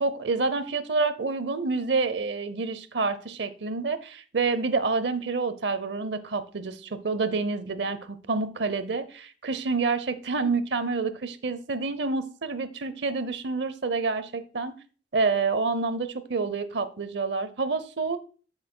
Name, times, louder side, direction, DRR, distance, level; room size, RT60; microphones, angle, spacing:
voice 1, 0.0-14.7 15.1-18.2, right 4 dB, 70° right, 13 dB, 0.7 m, -28 dB
12.0 x 5.6 x 2.2 m, 0.39 s
head